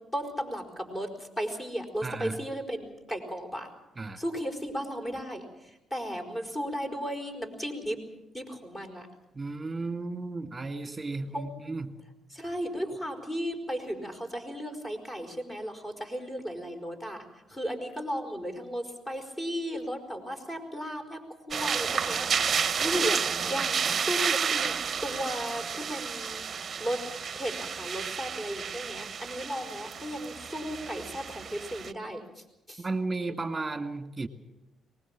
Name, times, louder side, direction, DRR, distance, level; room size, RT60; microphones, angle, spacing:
voice 1, 0.1-3.7 4.2-8.0 8.3-9.1 11.3-11.5 12.3-22.3 22.8-24.8 25.0-26.5 26.8-27.0 27.3-32.9, equal, 25° left, 5 dB, 5.0 m, -35 dB
voice 2, 2.0-2.4 4.0-4.2 9.3-12.0 32.8-34.3, right 3 dB, 20° right, 8 dB, 1.9 m, -34 dB
sound 1, 21.5-31.9, right 6 dB, 45° right, 0.7 m, -31 dB
23.5 x 20.0 x 7.3 m, 0.93 s
cardioid pair, 90°, 0 cm